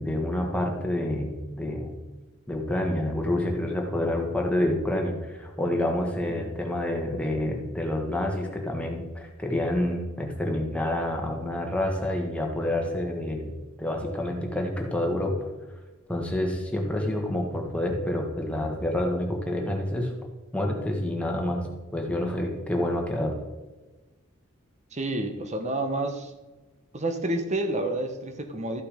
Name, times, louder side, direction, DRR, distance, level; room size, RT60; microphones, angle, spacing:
voice 1, 0.0-1.9 2.5-13.5 13.8-15.3 16.1-20.1 20.5-21.7 21.9-23.3, left 1 dB, 5° left, 1 dB, 1.6 m, -28 dB
voice 2, 24.9-26.3 26.9-28.8, right 1 dB, 35° right, 6 dB, 1.2 m, -29 dB
13.5 x 5.8 x 5.2 m, 1.2 s
head